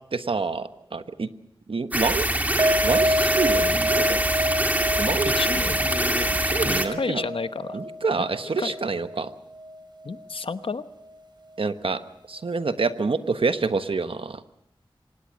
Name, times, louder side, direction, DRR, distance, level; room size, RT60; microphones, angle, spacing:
voice 1, 0.1-1.3 1.7-2.3 2.8-4.2 5.0-5.3 6.5-7.2 7.7-9.3 11.6-12.0 12.3-14.4, right 4 dB, 75° right, 11 dB, 1.3 m, -27 dB
sound 1, 1.9-6.9, right 1 dB, 15° right, 2.4 m, -24 dB
sound 2, 2.6-9.8 10.1-10.2 10.6-10.7, equal, 55° right, 3.8 m, -28 dB
voice 2, 5.3-6.3 6.6-7.8 8.2-8.3 8.6-8.7 10.0-10.8, left 4 dB, 70° left, 12 dB, 1.0 m, -31 dB
25.0 x 19.0 x 6.4 m, 0.77 s
wide cardioid pair, 55°, 9 cm